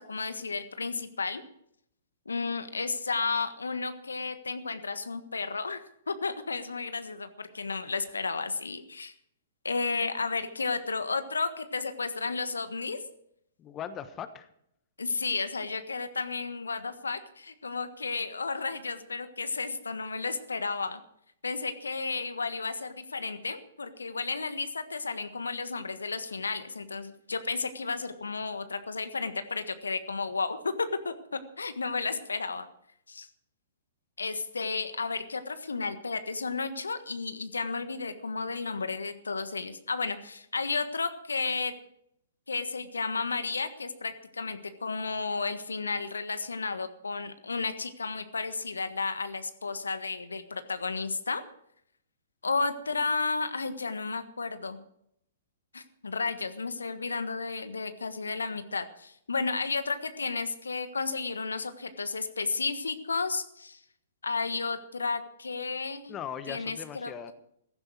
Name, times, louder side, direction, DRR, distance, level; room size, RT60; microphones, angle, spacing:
voice 1, 0.0-1.4 2.2-9.1 9.6-13.0 15.0-21.0 21.4-32.7 33.1-33.3 34.2-41.7 42.5-51.4 52.4-54.8 55.7-63.8 64.2-66.1 66.5-67.3, left 4 dB, 75° left, 10 dB, 1.4 m, -33 dB
voice 2, 13.6-14.5 66.1-67.3, left 9 dB, 25° left, 11 dB, 1.2 m, -39 dB
16.0 x 15.0 x 4.7 m, 0.72 s
figure-of-eight pair, 115°, 0 cm